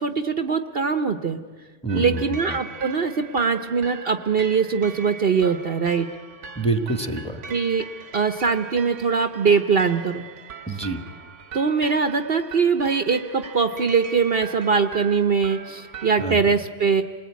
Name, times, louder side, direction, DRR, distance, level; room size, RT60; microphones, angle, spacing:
voice 1, 0.0-1.4 1.9-6.1 7.5-7.8 8.1-10.2 11.5-17.0, right 5 dB, 50° right, 9 dB, 1.1 m, -22 dB
voice 2, 1.8-2.6 6.5-7.4 10.7-11.0 16.2-16.5, right 2 dB, 5° left, 8 dB, 1.7 m, -27 dB
sound 1, 1.9-16.3, right 6 dB, 70° right, 1.3 m, -40 dB
28.0 x 20.0 x 9.5 m, 1.4 s
omnidirectional pair, 1.3 m